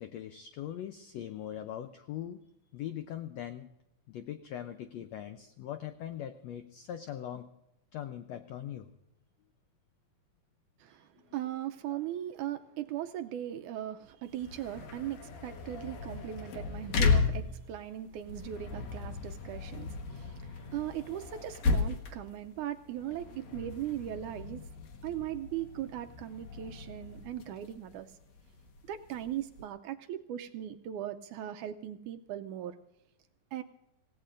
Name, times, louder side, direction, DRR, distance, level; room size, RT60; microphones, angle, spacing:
voice 1, 0.0-2.4 2.7-3.7 4.1-7.5 7.9-8.9 10.9-11.1 11.9-12.0, left 11 dB, 85° left, 8 dB, 1.5 m, -41 dB
voice 2, 11.3-20.3 20.7-24.6 25.0-28.1 28.9-32.7 33.5-33.6, right 11 dB, 75° right, 7 dB, 1.9 m, -38 dB
sound 1, 14.3-29.6, left 4 dB, 60° left, 2.4 m, -35 dB
26.5 x 17.5 x 2.6 m, 0.88 s
omnidirectional pair, 3.9 m